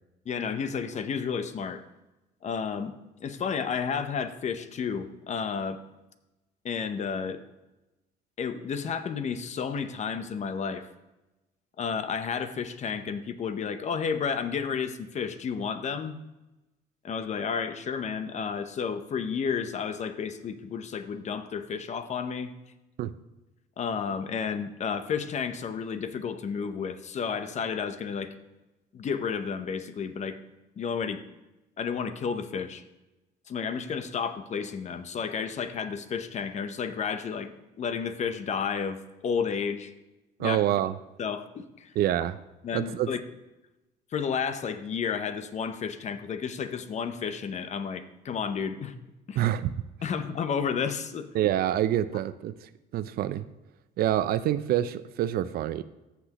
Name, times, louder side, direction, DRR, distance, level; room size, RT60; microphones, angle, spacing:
voice 1, 0.3-1.8 2.4-2.9 3.2-5.8 6.6-7.4 8.4-10.9 11.8-16.2 17.0-22.5 23.8-28.3 28.9-30.4 30.8-31.2 31.8-32.8 33.5-37.5 37.8-39.9 40.4-40.6 41.2-41.9 42.6-43.2 44.1-48.9 49.3-49.5 50.0-51.3, left 6 dB, 45° left, 10 dB, 0.8 m, -31 dB
voice 2, 40.4-40.9 42.0-42.4 42.7-43.1 49.4-49.7 51.3-53.5 54.0-55.8, right 12 dB, 65° right, 14 dB, 0.5 m, -27 dB
14.0 x 6.0 x 3.0 m, 1.0 s
cardioid pair, 110°, 17 cm